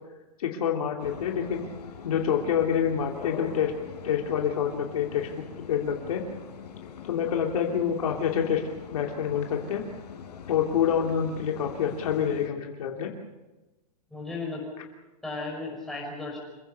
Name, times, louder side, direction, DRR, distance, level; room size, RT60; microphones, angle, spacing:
voice 1, 0.4-1.7 2.0-3.7 4.0-6.2 7.1-8.6 8.9-9.8 10.5-13.1, left 8 dB, 60° left, 1 dB, 2.9 m, -27 dB
sound 1, 1.0-12.5, left 7 dB, 80° left, 4.4 m, -42 dB
voice 2, 14.1-14.6 15.2-16.4, left 3 dB, ahead, -3 dB, 5.6 m, -35 dB
27.5 x 16.0 x 6.8 m, 1.1 s
supercardioid pair, 175°, 21 cm